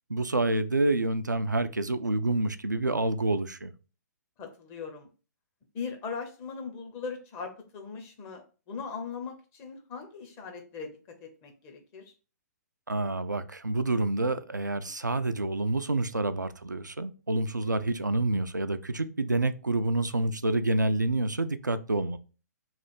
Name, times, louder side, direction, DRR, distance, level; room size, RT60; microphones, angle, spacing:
voice 1, 0.1-3.7 12.9-22.2, right 2 dB, 85° right, 0.4 m, -28 dB
voice 2, 4.4-5.1 5.7-10.9 11.2-12.1 14.8-14.9, left 5 dB, 25° left, 0.8 m, -39 dB
3.2 x 2.4 x 4.3 m
figure-of-eight pair, 125°, 10 cm